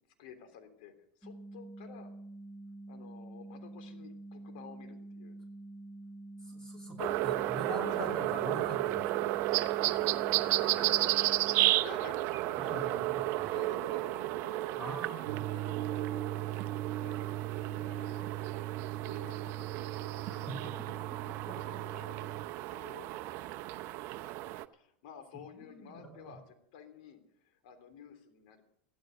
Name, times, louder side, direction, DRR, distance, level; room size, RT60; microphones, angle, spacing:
voice 1, 0.2-2.1 2.9-5.3 7.2-7.5 7.9-8.1 10.3-10.4 10.7-11.2 11.7-13.0 13.5-14.7 15.5-16.7 17.0-17.2 17.6-18.3 19.0-21.1 21.7-22.4 22.7-23.1 24.7-28.6, left 7 dB, 70° left, 7 dB, 3.4 m, -52 dB
sound 1, 1.2-11.7, right 2 dB, 5° right, 1.3 m, -47 dB
voice 2, 6.4-9.3 12.6-13.6 14.8-15.5 20.3-20.7 21.3-21.6 25.5-26.4, equal, 10° left, 2 dB, 2.9 m, -43 dB
sound 2, 7.0-24.6, right 17 dB, 55° right, 0.8 m, -33 dB
sound 3, 15.2-22.5, right 13 dB, 70° right, 1.4 m, -39 dB
15.5 x 13.5 x 6.7 m, 0.73 s
hypercardioid pair, 100°, 5 cm